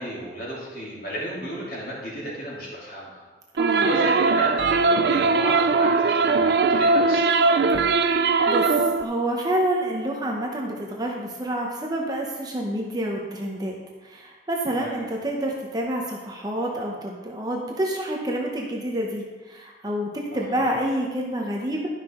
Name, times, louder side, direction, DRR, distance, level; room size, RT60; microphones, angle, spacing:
voice 1, 0.0-3.2 3.7-7.5 14.7-15.0 20.5-20.6, equal, 50° left, -6 dB, 3.0 m, -33 dB
voice 2, 3.6-3.9 8.0-8.2 8.5-8.7 9.0-13.7 14.0-21.9, right 1 dB, 20° right, -1 dB, 0.9 m, -28 dB
sound 1, 3.6-9.0, right 4 dB, 60° right, 0.4 m, -20 dB
11.5 x 5.9 x 3.8 m, 1.3 s
head